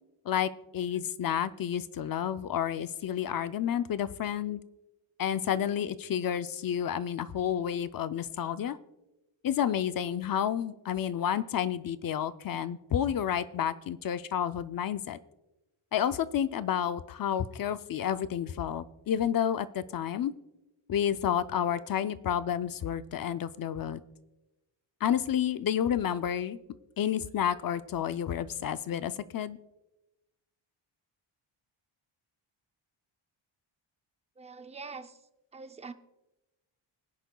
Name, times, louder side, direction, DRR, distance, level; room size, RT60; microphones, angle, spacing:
voice 1, 0.3-4.6 5.2-8.8 9.4-15.2 15.9-20.3 20.9-24.0 25.0-26.6 27.0-29.6, left 9 dB, 45° left, 13 dB, 0.5 m, -30 dB
voice 2, 34.4-35.2 35.5-35.9, right 4 dB, 15° right, 9 dB, 0.4 m, -44 dB
23.0 x 10.0 x 2.3 m, 0.99 s
wide cardioid pair, 170°, 49 cm